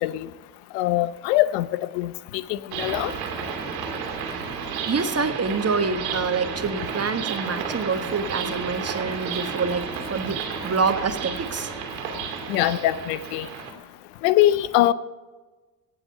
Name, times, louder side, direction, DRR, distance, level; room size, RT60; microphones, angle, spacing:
voice 1, 0.7-3.1 12.5-13.5 14.2-14.9, left 14 dB, 80° left, 16 dB, 0.8 m, -22 dB
sound 1, 2.7-13.7, right 6 dB, 85° right, 2.2 m, -32 dB
voice 2, 4.9-11.7, right 4 dB, 30° right, 9 dB, 1.5 m, -26 dB
17.5 x 7.9 x 6.5 m, 1.3 s
hypercardioid pair, 55°, 48 cm